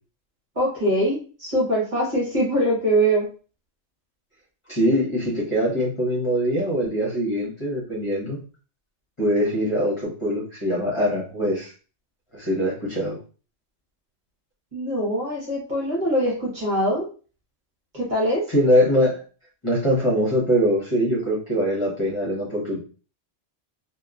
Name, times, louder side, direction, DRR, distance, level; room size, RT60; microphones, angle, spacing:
voice 1, 0.5-3.3 14.7-17.1 17.9-18.4, right 1 dB, 45° right, -4 dB, 1.2 m, -23 dB
voice 2, 4.7-8.4 9.2-11.7 12.3-13.2 18.5-19.2 19.6-22.8, equal, 30° left, -5 dB, 1.0 m, -22 dB
2.9 x 2.3 x 2.4 m, 0.37 s
omnidirectional pair, 1.1 m